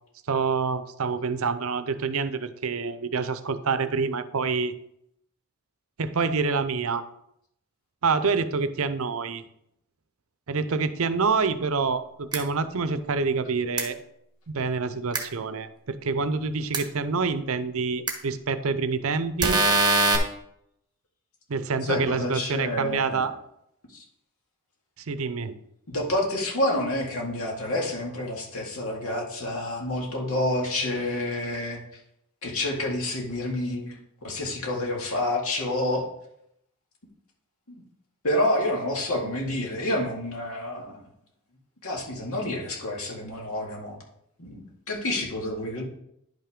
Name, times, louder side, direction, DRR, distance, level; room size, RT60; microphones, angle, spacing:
voice 1, 0.3-4.8 6.0-7.1 8.0-9.4 10.5-14.0 14.5-19.6 21.5-23.3 25.1-25.5, right 4 dB, 70° right, 12 dB, 0.6 m, -27 dB
sound 1, 12.3-12.4 13.8-13.9 15.1-15.2 16.7-16.8 18.1-18.2 19.4-20.2, right 2 dB, 20° right, 1.0 m, -21 dB
voice 2, 21.9-23.2 23.9-24.0 25.9-31.8 32.4-33.9 34.2-36.1 37.7-37.8 38.2-41.0 41.8-44.0 44.4-45.8, left 1 dB, 75° left, -1 dB, 2.2 m, -28 dB
10.5 x 5.7 x 3.7 m, 0.75 s
head